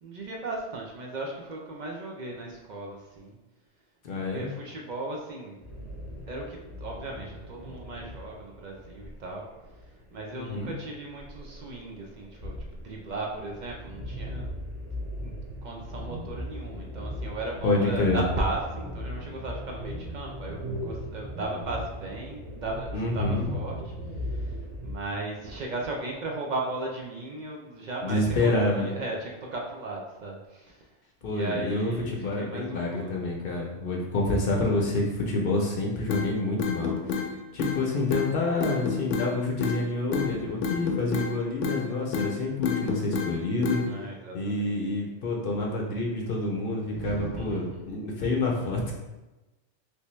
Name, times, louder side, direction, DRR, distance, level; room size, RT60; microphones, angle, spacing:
voice 1, 0.0-3.4 4.1-5.6 6.3-9.5 9.7-14.5 15.2-30.9 31.2-33.2 40.2-40.7 43.8-44.7 46.9-47.8, right 2 dB, 55° right, -1 dB, 0.5 m, -36 dB
voice 2, 4.0-4.5 10.3-10.7 17.6-18.2 22.9-23.5 28.0-28.9 31.2-37.2 37.5-43.8 44.3-48.9, left 2 dB, 60° left, -1 dB, 0.7 m, -28 dB
sound 1, 5.6-24.9, left 1 dB, 25° right, 0.8 m, -37 dB
sound 2, 36.1-36.3 36.6-37.3 37.6-37.8 38.1-38.3 38.6-39.3 39.6-39.8 40.1-40.3 40.6-41.3 41.6-41.8 42.1-42.3 42.6-43.3 43.6-43.8, left 6 dB, 85° left, 0.9 m, -28 dB
3.4 x 2.7 x 3.0 m, 1.1 s
omnidirectional pair, 1.2 m